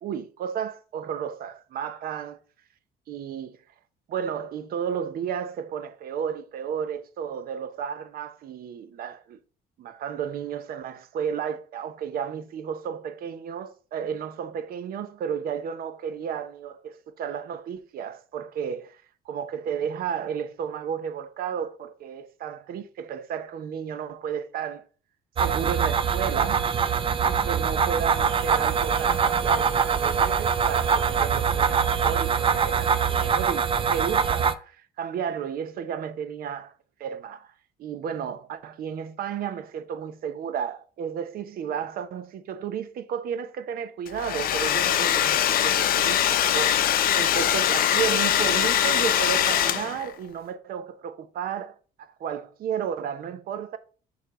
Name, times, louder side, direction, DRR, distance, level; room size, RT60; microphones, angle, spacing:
voice 1, 0.0-2.4 3.1-3.6 4.1-9.4 9.8-18.8 19.3-24.8 25.4-36.7 37.0-37.5 37.8-53.8, right 8 dB, 60° right, 0.8 m, -33 dB
sound 1, 25.4-34.5, right 6 dB, 30° right, 0.5 m, -23 dB
Domestic sounds home sounds, 44.1-50.1, left 10 dB, 60° left, 0.6 m, -22 dB
6.5 x 3.4 x 5.0 m
cardioid pair, 110°, 17 cm